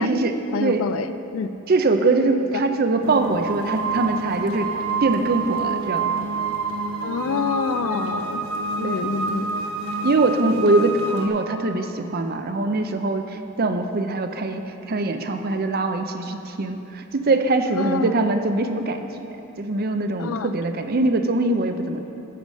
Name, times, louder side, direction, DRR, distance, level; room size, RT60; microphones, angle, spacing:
voice 1, 0.0-0.8 1.7-4.7 5.0-6.1 8.8-9.1 10.0-14.6 14.9-19.3 19.6-22.0, right 2 dB, 45° right, 7 dB, 0.5 m, -22 dB
voice 2, 0.5-1.5 2.5-2.7 7.0-8.5 8.8-9.5 17.7-18.1 20.2-20.5, left 5 dB, 70° left, 12 dB, 0.4 m, -27 dB
sound 1, 3.0-11.3, right 4 dB, 80° right, 1.0 m, -28 dB
13.5 x 4.9 x 5.3 m, 2.9 s
head